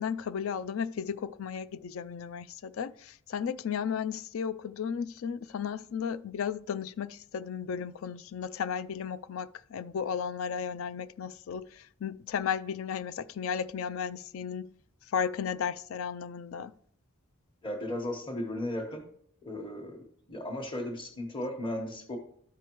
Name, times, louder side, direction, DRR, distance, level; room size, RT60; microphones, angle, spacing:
voice 1, 0.0-14.7 15.1-16.7, left 7 dB, 65° left, 0.4 m, -34 dB
voice 2, 17.6-19.0 19.4-20.0 20.3-22.2, left 1 dB, 25° left, 1.1 m, -35 dB
13.0 x 4.8 x 3.0 m
head